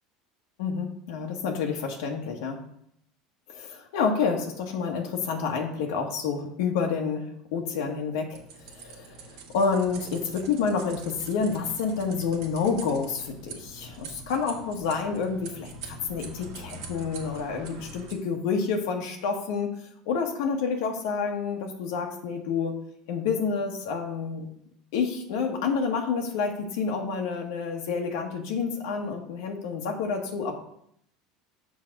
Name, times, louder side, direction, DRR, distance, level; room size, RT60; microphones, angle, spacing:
voice 1, 0.6-2.6 3.5-8.4 8.8-19.7 20.0-22.7 23.1-24.5 24.9-30.5, left 5 dB, 80° left, 2 dB, 1.2 m, -29 dB
sound 1, 8.3-18.1, right 3 dB, 75° right, 1.6 m, -44 dB
6.4 x 4.1 x 6.3 m, 0.72 s
supercardioid pair, 105°, 2 cm